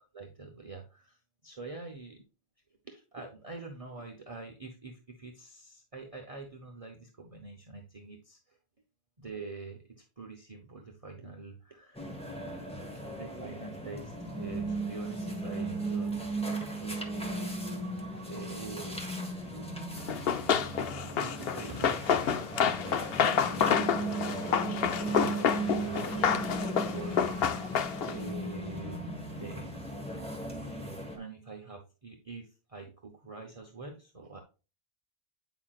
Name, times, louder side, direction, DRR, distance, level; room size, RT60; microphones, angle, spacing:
voice 1, 0.1-2.2 2.8-8.6 9.2-12.1 13.1-17.7 18.2-19.1 19.4-19.7 21.2-22.8 23.4-23.9 24.2-27.3 27.6-27.7 28.0-29.9 30.4-34.4, right 3 dB, 35° right, 1 dB, 0.9 m, -45 dB
sound 1, 11.9-31.2, right 2 dB, 5° left, 1.4 m, -37 dB
Run, 20.1-28.3, left 7 dB, 65° left, 0.8 m, -29 dB
8.8 x 5.8 x 2.4 m, 0.32 s
omnidirectional pair, 1.1 m